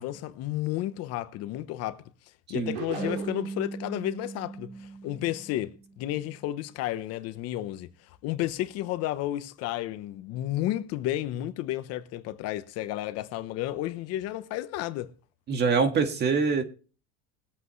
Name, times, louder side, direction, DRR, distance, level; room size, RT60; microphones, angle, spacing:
voice 1, 0.0-2.0 2.5-7.9 8.2-15.1, left 14 dB, 55° left, 0.9 m, -32 dB
sound 1, 2.7-3.6, right 7 dB, 90° right, 3.1 m, -36 dB
sound 2, 3.0-6.1, right 3 dB, 20° right, 2.4 m, -39 dB
voice 2, 15.5-16.6, right 5 dB, 35° right, 1.8 m, -24 dB
20.5 x 8.1 x 3.2 m
cardioid pair, 140°, 29 cm